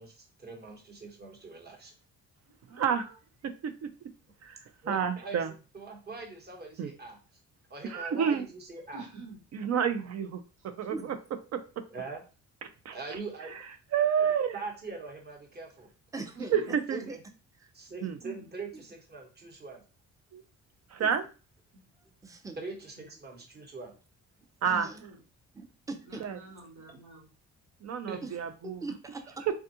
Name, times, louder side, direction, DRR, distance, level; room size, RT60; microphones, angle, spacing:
voice 1, 0.0-1.9 4.8-5.4 5.7-7.2 7.7-9.0 11.9-12.2 12.9-13.6 14.0-15.9 16.5-16.6 16.9-17.2 17.7-19.8 22.6-23.9 28.1-28.2, right 3 dB, 35° right, 2 dB, 1.1 m, -42 dB
voice 2, 2.4-3.2 8.9-9.4 10.6-11.1 16.3-16.8 18.0-18.5 21.7-21.8 23.0-23.1 25.0-25.2 26.0-27.3, right 3 dB, 75° right, -2 dB, 1.4 m, -48 dB
voice 3, 3.4-3.9 4.9-5.5 6.8-6.9 7.9-8.4 9.5-11.2 11.5-11.6 12.9-13.0 13.9-14.5 16.5-17.0 18.0-18.2 20.3-20.4 20.9-21.2 24.6-24.9 26.2-26.4 27.8-28.8 29.5-29.6, right 8 dB, 60° right, 10 dB, 0.5 m, -29 dB
voice 4, 16.1-17.2 18.7-18.8 21.0-21.2 22.2-22.6 24.6-25.0 25.5-26.2 28.2-28.3 28.6-29.4, right 3 dB, 10° right, 6 dB, 0.5 m, -41 dB
3.5 x 2.4 x 2.7 m, 0.34 s
cardioid pair, 90°, 30 cm